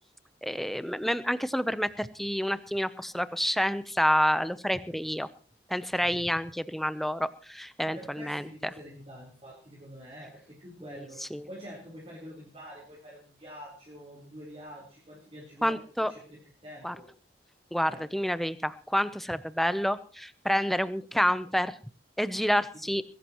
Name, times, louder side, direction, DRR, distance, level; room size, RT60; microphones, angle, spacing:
voice 1, 0.4-5.3 5.7-8.5 11.2-11.5 15.6-16.1 16.8-17.0 17.7-21.7 22.2-23.0, equal, ahead, 13 dB, 0.6 m, -28 dB
voice 2, 7.8-15.8 16.1-17.1 17.9-18.0, equal, 35° right, -4 dB, 4.0 m, -46 dB
21.0 x 16.5 x 3.0 m, 0.38 s
head